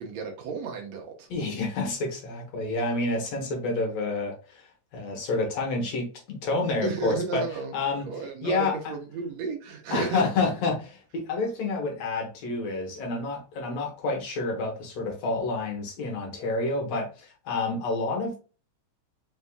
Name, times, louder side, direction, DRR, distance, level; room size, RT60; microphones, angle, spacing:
voice 1, 0.0-1.3 6.8-7.8 8.1-10.2, right 5 dB, 75° right, 2.0 m, -33 dB
voice 2, 1.3-4.7 4.9-8.1 8.4-8.9 9.9-18.4, left 3 dB, 65° left, 2.3 m, -29 dB
5.3 x 3.5 x 2.3 m
omnidirectional pair, 3.4 m